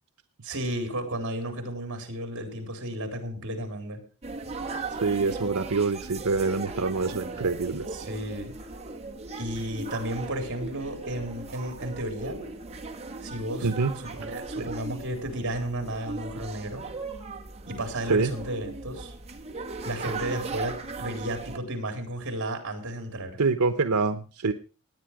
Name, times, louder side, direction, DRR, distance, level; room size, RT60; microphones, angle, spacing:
voice 1, 0.4-4.0 7.9-8.6 9.4-12.4 13.2-16.8 17.7-19.1 19.8-23.4, right 1 dB, 60° right, 5 dB, 4.0 m, -33 dB
sound 1, 4.2-21.6, right 3 dB, 30° right, 1.7 m, -38 dB
voice 2, 4.9-7.9 13.6-13.9 14.6-14.7 18.1-18.3 23.4-24.5, right 4 dB, 90° right, 9 dB, 0.9 m, -26 dB
18.0 x 9.6 x 4.9 m, 0.36 s
head